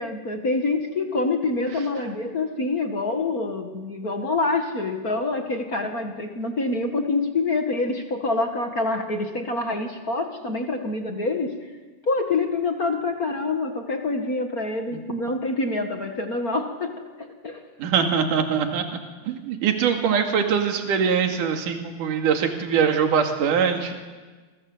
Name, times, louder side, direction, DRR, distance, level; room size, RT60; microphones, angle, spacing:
voice 1, 0.0-11.7 12.0-17.6, left 3 dB, 40° left, 4 dB, 1.4 m, -26 dB
voice 2, 17.8-18.8 19.3-23.9, right 7 dB, 65° right, 4 dB, 3.6 m, -22 dB
27.5 x 23.5 x 7.9 m, 1.4 s
omnidirectional pair, 4.2 m